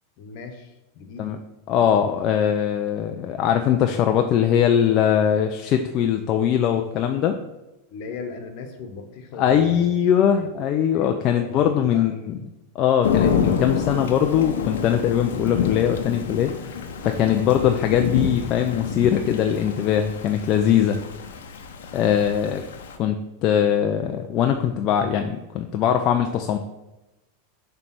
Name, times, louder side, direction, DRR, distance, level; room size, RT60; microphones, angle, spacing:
voice 1, 0.2-1.3 7.9-9.9 10.3-10.5 10.9-12.3, left 4 dB, 60° left, 6 dB, 1.2 m, -38 dB
voice 2, 1.7-7.4 9.4-12.4 12.7-21.0 21.9-22.6 23.0-26.6, left 9 dB, 45° left, 5 dB, 0.5 m, -21 dB
Thunder / Rain, 13.0-23.0, left 7 dB, 85° left, 0.9 m, -28 dB
7.0 x 3.4 x 6.1 m, 0.99 s
hypercardioid pair, 120°, 0 cm